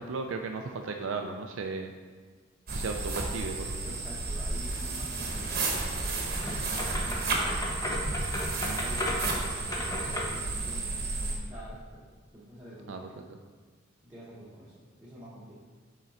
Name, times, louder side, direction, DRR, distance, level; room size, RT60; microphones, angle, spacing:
voice 1, 0.0-1.9 2.7-3.9 8.6-8.9 12.9-13.4, right 4 dB, 75° right, 4 dB, 0.4 m, -36 dB
sound 1, 2.7-11.4, right 3 dB, 50° right, 1.0 m, -32 dB
voice 2, 3.8-5.7 6.0-8.1 8.8-13.0 14.0-15.5, equal, 10° right, -10 dB, 1.0 m, -47 dB
sound 2, 6.4-10.5, left 1 dB, 20° left, 0.8 m, -34 dB
7.3 x 3.7 x 4.1 m, 1.5 s
head